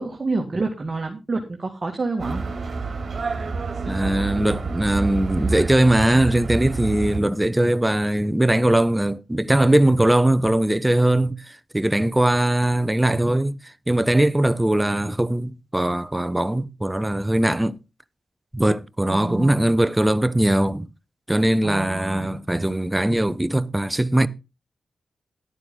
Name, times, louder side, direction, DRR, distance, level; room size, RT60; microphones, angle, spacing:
voice 1, 0.0-2.4 19.1-19.7 21.6-22.4, right 3 dB, 40° right, 2.4 m, -28 dB
sound 1, 2.2-7.2, right 4 dB, 55° right, 3.2 m, -28 dB
voice 2, 3.8-13.5 13.9-17.8 18.5-20.9 21.3-24.3, right 1 dB, 15° right, 0.9 m, -20 dB
11.5 x 9.5 x 3.9 m
cardioid pair, 55°, 0 cm